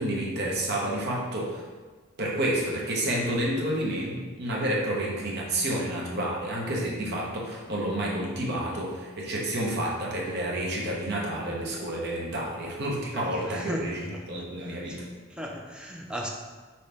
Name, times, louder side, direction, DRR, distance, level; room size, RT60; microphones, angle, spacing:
voice 1, 0.0-1.7 2.2-15.1, right 1 dB, 50° right, -3 dB, 0.9 m, -30 dB
voice 2, 13.1-14.1 14.6-16.3, equal, 5° right, 0 dB, 0.4 m, -37 dB
5.2 x 2.8 x 3.4 m, 1.4 s
head